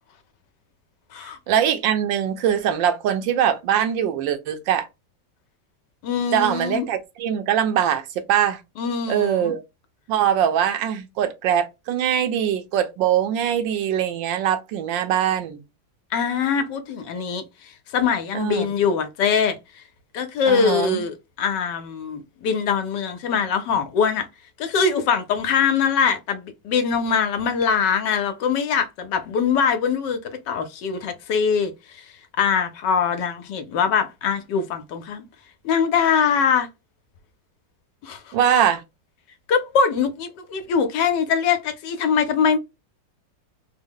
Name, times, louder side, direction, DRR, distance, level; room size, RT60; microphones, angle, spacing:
voice 1, 1.5-4.9 6.3-8.6 9.1-9.6 10.1-15.6 18.3-18.7 20.5-21.0 38.3-38.8, right 9 dB, 80° right, 1.4 m, -22 dB
voice 2, 6.0-6.9 8.8-9.5 16.1-17.4 17.9-19.6 20.1-24.3 24.6-30.2 30.5-32.0 32.4-35.2 35.6-36.7 38.0-38.3 39.5-42.6, left 6 dB, 75° left, 1.2 m, -22 dB
3.6 x 2.1 x 3.5 m
omnidirectional pair, 2.0 m